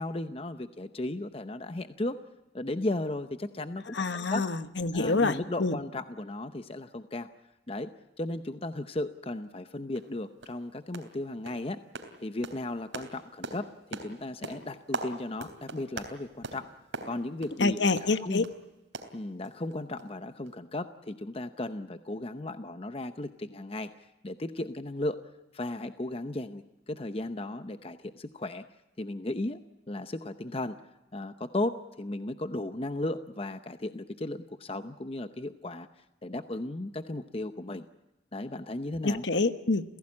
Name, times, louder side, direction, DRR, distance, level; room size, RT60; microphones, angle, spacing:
voice 1, 0.0-2.2 2.5-3.8 4.1-4.4 4.9-7.3 7.7-7.9 8.2-11.8 12.2-13.7 14.0-16.7 17.0-17.9 18.2-18.5 19.1-25.2 25.5-28.6 29.0-29.6 29.9-30.8 31.1-35.9 36.2-37.9 38.3-39.2, left 2 dB, 30° left, 10 dB, 0.7 m, -35 dB
voice 2, 3.9-5.8 17.6-18.4 39.0-39.8, left 3 dB, 70° left, 11 dB, 1.1 m, -27 dB
sound 1, 9.4-9.5 10.0-10.1 10.4-10.6 10.9-11.2 11.5-18.6 18.9-19.7 20.0-20.1 20.5-20.6, right 3 dB, 80° right, 3.4 m, -41 dB
29.0 x 16.5 x 8.6 m, 1.0 s
head